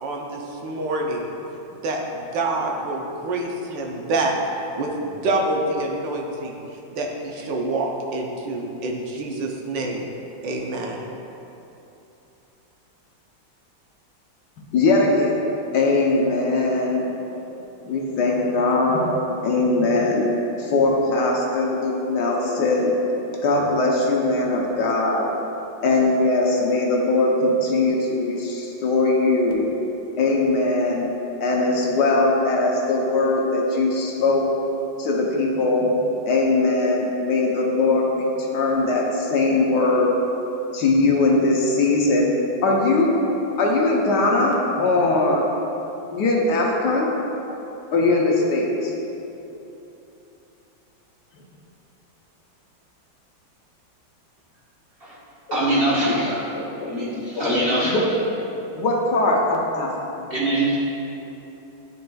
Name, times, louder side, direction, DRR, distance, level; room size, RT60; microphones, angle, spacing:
voice 1, 0.0-1.3 1.7-4.3 4.7-10.1 10.4-11.1, right 2 dB, 75° right, 1 dB, 1.3 m, -27 dB
voice 2, 14.7-15.4 15.7-17.0 17.9-19.1 19.4-20.2 20.6-22.9 23.4-25.3 25.8-29.7 30.2-31.1 31.4-34.4 35.0-35.9 36.3-38.2 38.5-40.1 40.7-42.3 42.6-43.1 43.6-45.4 46.1-47.1 47.9-48.9 55.5-55.6 56.5-56.9 57.3-57.6 57.8-58.1 58.8-59.9, left 2 dB, 70° left, -2 dB, 1.3 m, -20 dB
voice 3, 55.5-56.4 56.9-58.0 60.3-60.8, right 1 dB, 40° right, -7 dB, 0.9 m, -22 dB
11.0 x 4.2 x 2.3 m, 3.0 s
omnidirectional pair, 2.0 m